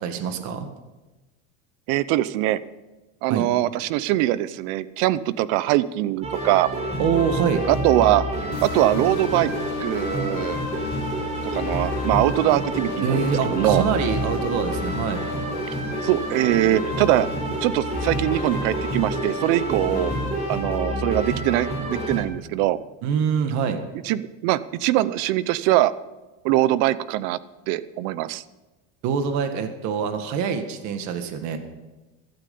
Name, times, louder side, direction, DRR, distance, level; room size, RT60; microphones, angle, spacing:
voice 1, 0.0-0.7 3.3-3.5 7.0-7.6 13.0-15.2 23.0-23.8 29.0-31.6, right 7 dB, 60° right, 7 dB, 1.8 m, -25 dB
voice 2, 1.9-2.6 3.2-6.7 7.7-8.2 8.6-9.5 9.8-10.6 11.4-13.8 16.0-17.3 17.6-20.1 20.5-22.8 24.0-25.9 26.4-27.4 27.7-28.4, right 15 dB, 75° right, 17 dB, 0.8 m, -22 dB
sound 1, 6.2-22.2, right 1 dB, 20° right, 4.2 m, -28 dB
sound 2, 8.5-20.3, left 9 dB, 50° left, 2.7 m, -35 dB
15.5 x 13.0 x 5.5 m, 1.1 s
cardioid pair, 145°, 33 cm